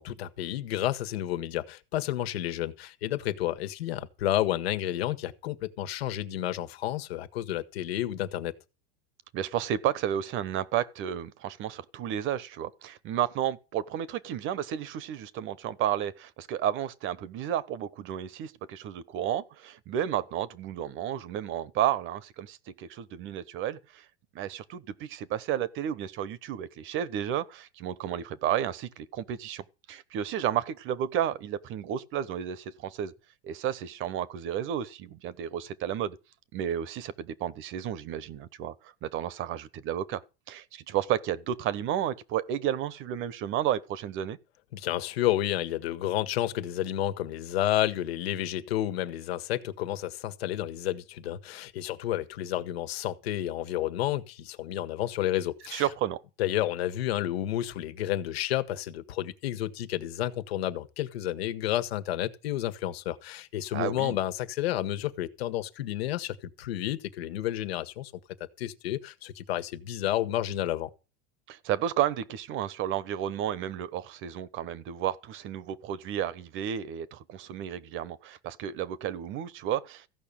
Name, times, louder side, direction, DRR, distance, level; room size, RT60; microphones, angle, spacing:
voice 1, 0.0-8.5 44.7-55.9 56.4-68.1 68.6-70.9, left 13 dB, 85° left, 1.6 m, -31 dB
voice 2, 9.3-24.0 24.3-33.1 33.4-36.2 36.5-38.7 39.0-40.2 40.5-44.4 55.7-56.2 63.7-64.2 71.5-80.0, right 10 dB, 40° right, 1.1 m, -32 dB
15.0 x 5.6 x 8.9 m
supercardioid pair, 135°, 30 cm